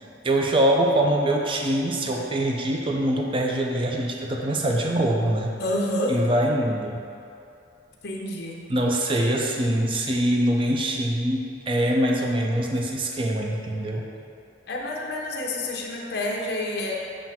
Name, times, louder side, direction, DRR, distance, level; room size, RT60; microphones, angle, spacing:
voice 1, 0.2-5.6 6.1-7.0 8.7-14.1, right 1 dB, 30° right, 0 dB, 0.5 m, -23 dB
voice 2, 5.6-6.2 8.0-8.7 14.7-17.0, left 1 dB, 60° left, -2 dB, 0.8 m, -28 dB
7.5 x 2.5 x 5.7 m, 2.7 s
head